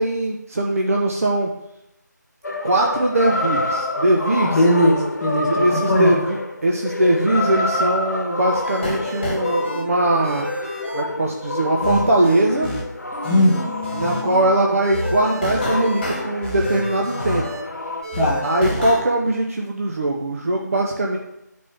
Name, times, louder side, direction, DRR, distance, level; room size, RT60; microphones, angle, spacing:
voice 1, 0.0-1.5 2.6-4.6 5.4-10.5 10.9-12.7 13.9-17.5 18.4-21.2, right 1 dB, 50° right, -1 dB, 0.7 m, -21 dB
sound 1, 2.4-18.0, left 2 dB, 65° left, 1.0 m, -28 dB
voice 2, 4.5-6.2 13.2-13.5 18.2-18.4, left 1 dB, 5° left, -9 dB, 0.7 m, -18 dB
sound 2, 8.5-9.8 10.2-11.0 11.8-12.8 13.1-14.4 14.8-17.6 18.0-19.0, left 1 dB, 25° left, 1.6 m, -29 dB
10.0 x 4.3 x 3.5 m, 0.87 s
figure-of-eight pair, 165°, 10 cm